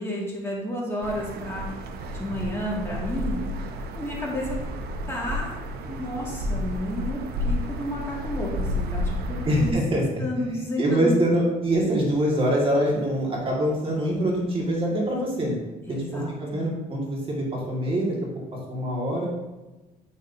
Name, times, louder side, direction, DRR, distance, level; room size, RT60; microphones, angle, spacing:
voice 1, 0.0-1.7 2.1-3.4 4.0-4.6 5.1-5.6 5.9-9.7 10.2-11.2 15.9-16.6, left 1 dB, 15° left, -4 dB, 2.1 m, -31 dB
sound 1, 1.0-9.7, equal, 70° right, 0.8 m, -31 dB
voice 2, 9.5-10.0 10.8-15.6 15.9-18.2 18.7-19.3, equal, 35° right, -3 dB, 1.8 m, -24 dB
9.0 x 5.6 x 2.7 m, 1.1 s
cardioid pair, 110°, 17 cm